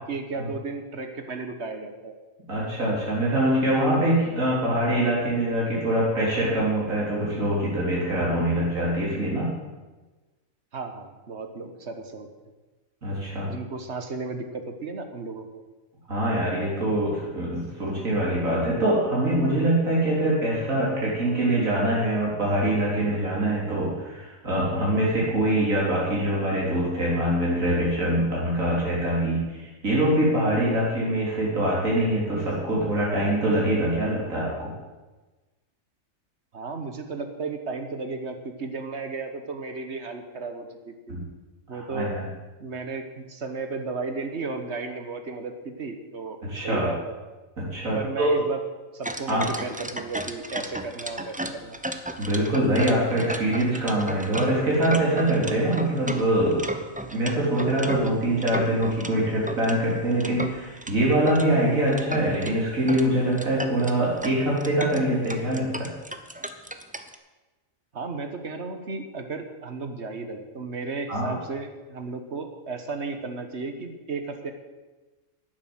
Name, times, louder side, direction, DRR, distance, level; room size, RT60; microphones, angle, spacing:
voice 1, 0.0-2.2 10.7-12.3 13.5-15.6 36.5-41.2 41.7-42.2 42.6-47.1 47.9-48.6 48.9-51.8 67.9-74.5, right 4 dB, 55° right, 7 dB, 1.5 m, -34 dB
voice 2, 2.5-9.5 13.0-13.5 16.1-34.7 41.1-41.2 41.7-42.2 46.4-46.9 47.6-48.3 49.3-49.5 52.2-56.6 57.1-65.9 71.1-71.3, right 1 dB, 75° right, -5 dB, 4.0 m, -24 dB
sound 1, 49.0-59.1 59.5-61.5 61.9-62.5 62.9-63.1 63.3-67.2, right 1 dB, 10° right, 0.6 m, -34 dB
11.5 x 9.7 x 7.9 m, 1.2 s
omnidirectional pair, 1.4 m